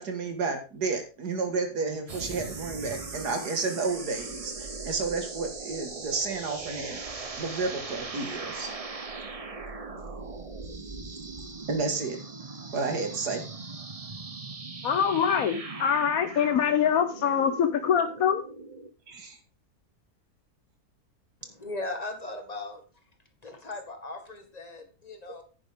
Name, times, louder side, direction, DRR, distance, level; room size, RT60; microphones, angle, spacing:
voice 1, 0.0-8.7 11.7-12.2 12.7-13.4 19.1-19.4, right 4 dB, 90° right, 2.4 m, -31 dB
sound 1, 2.1-18.9, right 3 dB, 30° right, 0.8 m, -39 dB
voice 2, 14.8-18.4, left 8 dB, 65° left, 1.2 m, -24 dB
voice 3, 21.4-22.8 23.4-25.4, left 2 dB, 25° left, 1.9 m, -38 dB
10.0 x 9.5 x 3.6 m
omnidirectional pair, 1.7 m